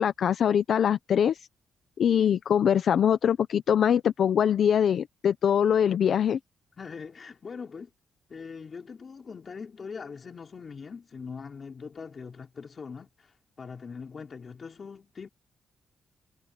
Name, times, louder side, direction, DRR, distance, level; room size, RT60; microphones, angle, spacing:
voice 1, 0.0-1.5 2.0-6.4, left 8 dB, 60° left, 0.7 m, -23 dB
voice 2, 6.8-7.9 8.3-13.1 13.6-15.3, left 5 dB, 35° left, 5.2 m, -41 dB
cardioid pair, 135°, 0 cm